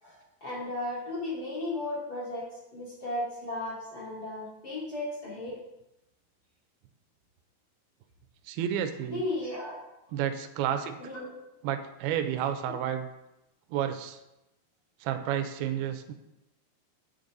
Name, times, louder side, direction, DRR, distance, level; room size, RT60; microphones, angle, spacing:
voice 1, 0.0-5.5 9.1-9.8 11.0-11.3, left 2 dB, 25° left, -7 dB, 4.3 m, -35 dB
voice 2, 8.5-9.2 10.1-11.1 11.6-13.1 13.7-14.2 15.0-16.1, right 9 dB, 80° right, 7 dB, 2.6 m, -31 dB
10.0 x 8.5 x 4.0 m, 0.91 s
omnidirectional pair, 4.7 m